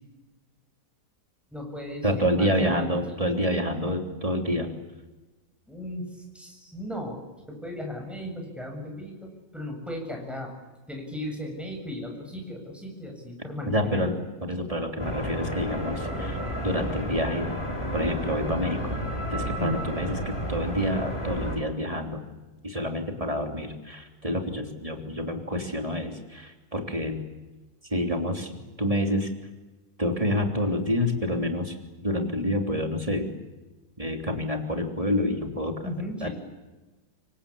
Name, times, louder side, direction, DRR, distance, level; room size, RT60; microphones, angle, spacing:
voice 1, 1.5-3.0 5.7-10.5 10.9-14.1 18.5-18.6 19.6-19.8 35.8-36.3, left 1 dB, ahead, 1 dB, 7.4 m, -36 dB
voice 2, 2.0-4.7 13.7-17.5 17.9-19.0 19.3-22.2 22.6-27.2 27.8-29.3 30.0-31.8 32.0-33.3 34.0-35.7 36.2-36.3, equal, 20° right, 4 dB, 3.3 m, -28 dB
sound 1, 15.0-21.6, equal, 15° left, 5.0 m, -32 dB
26.5 x 24.5 x 8.7 m, 1.2 s
omnidirectional pair, 1.9 m